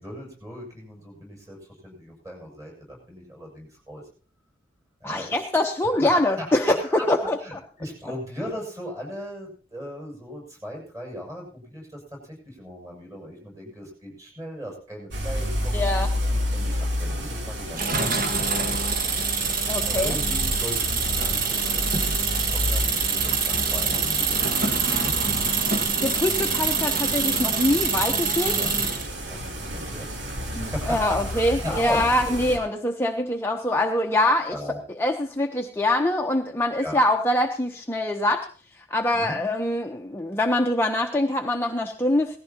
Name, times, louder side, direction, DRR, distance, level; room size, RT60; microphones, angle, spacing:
voice 1, 0.0-1.6 1.8-4.0 5.0-5.4 6.0-7.1 7.4-15.8 16.3-18.1 18.4-18.5 19.9-22.2 22.5-24.5 28.5-28.7 29.3-32.2 34.5-34.8 36.8-37.0 39.1-39.4, left 1 dB, 20° right, -1 dB, 7.3 m, -38 dB
voice 2, 5.0-6.8 7.1-7.6 15.7-16.1 19.7-20.2 26.0-28.7 30.5-34.6 35.0-38.5 38.7-42.4, left 1 dB, 15° left, 2 dB, 0.8 m, -24 dB
sound 1, 15.1-32.6, equal, 70° right, 2.8 m, -31 dB
sound 2, 17.8-29.1, right 5 dB, 50° right, 1.8 m, -25 dB
18.5 x 15.0 x 2.9 m, 0.40 s
head